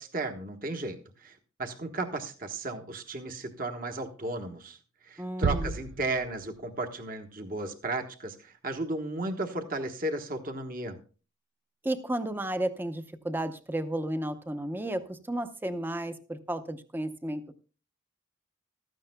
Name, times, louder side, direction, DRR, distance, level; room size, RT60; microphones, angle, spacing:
voice 1, 0.0-4.8 5.0-11.0, right 2 dB, 45° right, 6 dB, 1.2 m, -34 dB
voice 2, 5.2-5.8 11.8-17.6, right 1 dB, 10° right, 9 dB, 0.7 m, -33 dB
sound 1, 5.4-6.8, right 4 dB, 80° right, 0.5 m, -32 dB
15.5 x 13.0 x 2.2 m, 0.37 s
head